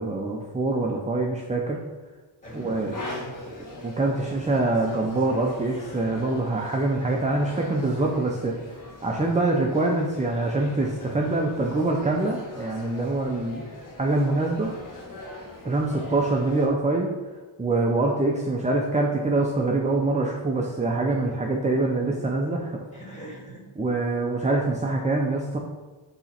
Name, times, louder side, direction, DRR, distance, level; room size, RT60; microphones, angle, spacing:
voice 1, 0.0-1.8 2.5-2.9 3.8-8.5 9.0-13.7 14.0-14.7 15.6-17.1 17.6-22.7 23.8-25.6, right 2 dB, 15° right, 0 dB, 0.4 m, -24 dB
sound 1, 2.4-16.7, left 2 dB, 40° left, 1.6 m, -42 dB
voice 2, 2.4-3.6 4.1-4.4 15.7-16.2 22.9-23.6, right 1 dB, 15° left, -5 dB, 1.9 m, -42 dB
8.3 x 3.0 x 4.2 m, 1.3 s
wide cardioid pair, 150°, 47 cm